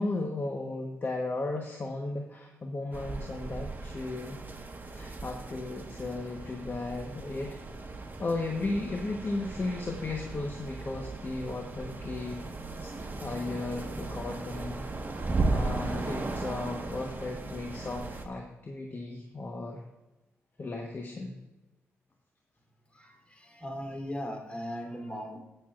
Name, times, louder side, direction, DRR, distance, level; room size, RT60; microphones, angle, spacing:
voice 1, 0.0-4.4 4.9-7.6 8.2-12.4 12.8-14.9 15.2-19.8 20.6-21.4, left 2 dB, 40° left, 2 dB, 1.1 m, -35 dB
sound 1, 2.9-18.2, right 3 dB, 35° right, 1.3 m, -36 dB
voice 2, 22.9-25.4, equal, 20° left, 2 dB, 3.2 m, -38 dB
19.0 x 6.8 x 2.5 m, 1.1 s
supercardioid pair, 55°, 5 cm